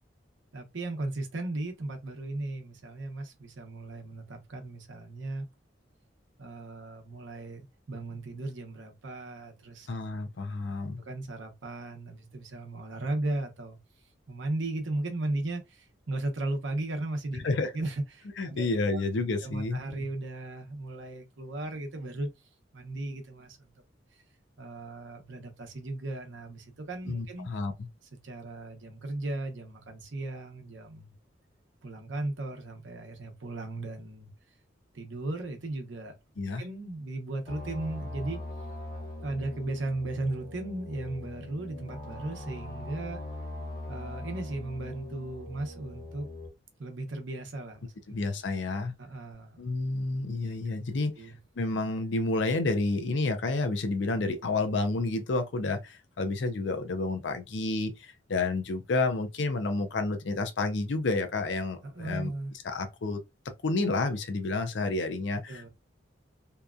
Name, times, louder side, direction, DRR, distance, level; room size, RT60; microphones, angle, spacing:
voice 1, 0.5-5.5 6.4-9.9 11.1-13.8 14.3-17.5 17.7-18.7 18.9-19.0 19.4-22.3 22.7-23.7 24.6-27.5 28.2-31.1 31.8-34.3 34.9-36.2 36.6-38.4 39.2-43.2 43.9-46.3 46.8-47.8 49.0-49.6 51.2-51.4 61.8-62.5 65.5-65.7, right 2 dB, 80° right, 0.8 m, -36 dB
voice 2, 9.9-11.0 17.3-17.7 18.4-19.8 27.1-27.9 36.4-36.6 48.1-48.9 49.6-62.3 62.6-63.2 63.6-65.7, left 3 dB, 70° left, 0.5 m, -30 dB
sound 1, 37.5-46.5, left 1 dB, 50° left, 1.0 m, -41 dB
2.8 x 2.2 x 2.4 m
head